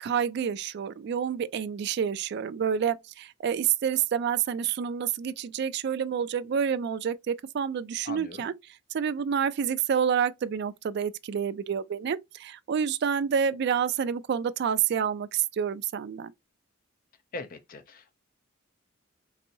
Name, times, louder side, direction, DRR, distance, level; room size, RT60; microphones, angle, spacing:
voice 1, 0.0-8.5 8.9-16.3, right 7 dB, 55° right, 0.3 m, -28 dB
voice 2, 8.0-8.5 17.3-18.2, left 2 dB, 45° left, 0.5 m, -40 dB
4.0 x 2.6 x 2.6 m
head